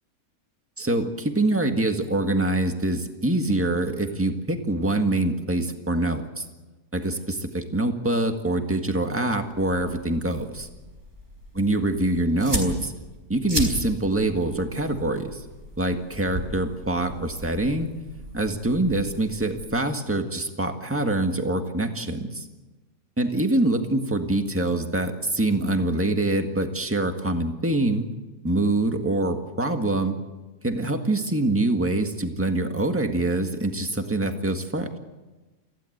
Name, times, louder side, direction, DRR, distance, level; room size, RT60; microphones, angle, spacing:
voice 1, 0.8-6.4 6.9-10.7 11.5-12.9 13.3-15.4 15.8-17.9 18.3-22.5 23.2-28.1 28.4-30.1 30.6-35.0, right 1 dB, 10° right, 5 dB, 1.7 m, -25 dB
sound 1, 9.4-19.6, right 1 dB, 50° right, 4.9 m, -36 dB
26.5 x 16.0 x 8.1 m, 1.2 s
omnidirectional pair, 1.5 m